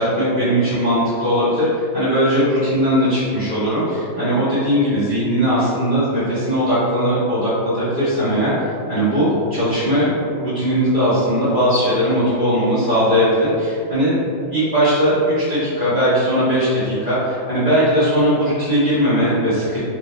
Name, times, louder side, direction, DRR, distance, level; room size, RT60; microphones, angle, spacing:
voice 1, 0.0-14.2 14.5-19.8, equal, 30° right, -11 dB, 1.5 m, -19 dB
3.9 x 3.4 x 3.0 m, 2.5 s
omnidirectional pair, 2.1 m